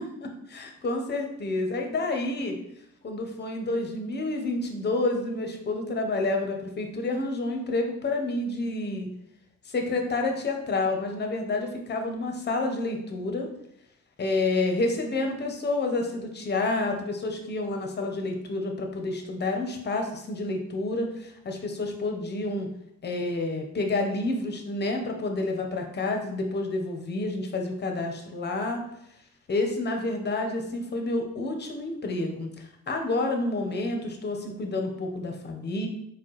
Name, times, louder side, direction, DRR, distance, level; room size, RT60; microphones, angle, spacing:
voice 1, 0.0-2.5 3.0-9.1 9.7-13.5 14.2-22.7 23.0-28.8 29.5-35.9, left 2 dB, 35° left, 4 dB, 0.7 m, -29 dB
4.3 x 2.2 x 3.0 m, 0.78 s
cardioid pair, 90°, 30 cm